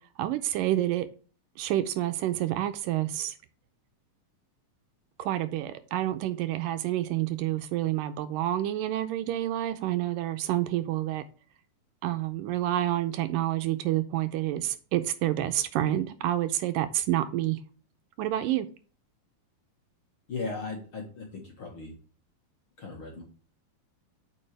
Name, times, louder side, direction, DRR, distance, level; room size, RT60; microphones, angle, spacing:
voice 1, 0.2-1.1 1.6-3.3 5.2-11.2 12.0-17.6 18.2-18.7, right 13 dB, 80° right, 2.2 m, -28 dB
voice 2, 20.3-21.9 22.8-23.2, left 3 dB, 50° left, 1.8 m, -37 dB
8.6 x 5.5 x 3.3 m
omnidirectional pair, 4.1 m